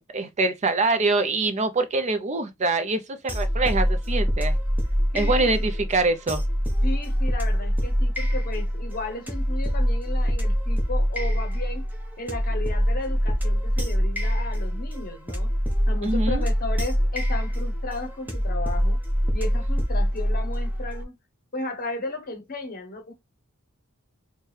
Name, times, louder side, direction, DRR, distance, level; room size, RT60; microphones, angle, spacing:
voice 1, 0.0-4.6 5.1-6.4 16.0-16.5, right 3 dB, 35° right, 0.5 m, -24 dB
sound 1, 3.3-21.0, equal, 10° right, 0.9 m, -24 dB
voice 2, 5.1-5.7 6.8-11.9 12.2-15.5 15.9-19.0 19.3-21.2 21.5-23.1, left 2 dB, 45° left, 0.9 m, -35 dB
4.5 x 2.2 x 3.2 m
head